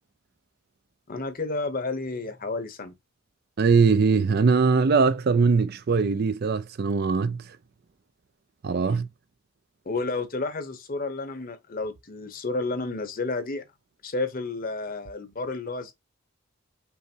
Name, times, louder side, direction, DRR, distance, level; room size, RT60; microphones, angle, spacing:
voice 1, 1.1-3.0 8.8-9.0 9.9-13.6 14.0-15.9, left 3 dB, 40° left, 0.9 m, -31 dB
voice 2, 3.6-7.4 8.6-9.1, right 4 dB, 45° right, 0.4 m, -21 dB
5.6 x 2.1 x 4.5 m
head